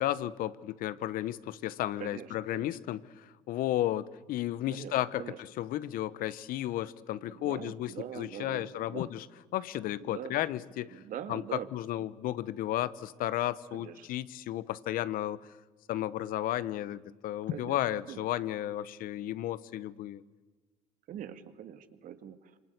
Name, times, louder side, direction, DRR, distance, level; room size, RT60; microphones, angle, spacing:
voice 1, 0.0-9.3 9.5-11.0 11.3-15.4 15.9-20.2, left 13 dB, 65° left, 17 dB, 1.0 m, -33 dB
voice 2, 2.0-2.8 4.7-5.4 7.3-9.1 10.0-10.3 10.9-11.7 13.7-14.1 17.5-17.8 18.1-18.3 21.1-22.6, right 10 dB, 60° right, 9 dB, 2.1 m, -43 dB
26.5 x 24.0 x 8.3 m, 1.3 s
supercardioid pair, 75°, 16 cm